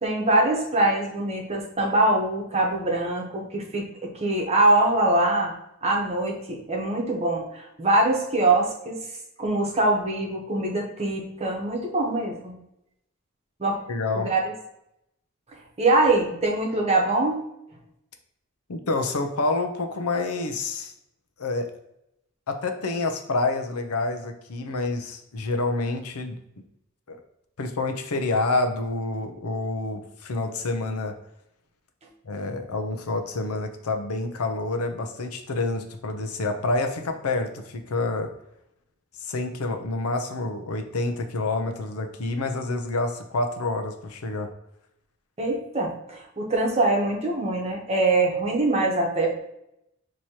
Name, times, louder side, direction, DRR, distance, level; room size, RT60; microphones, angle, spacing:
voice 1, 0.0-5.5 5.8-9.0 9.4-12.5 13.6-13.8 14.1-14.4 15.8-17.4 45.4-49.4, right 2 dB, 30° right, -1 dB, 1.0 m, -23 dB
voice 2, 13.9-14.3 18.7-20.9 21.4-21.7 22.5-26.4 27.1-27.2 27.6-31.1 32.2-38.3 39.2-44.5, left 2 dB, 85° left, 6 dB, 0.6 m, -28 dB
6.3 x 2.9 x 2.8 m, 0.81 s
head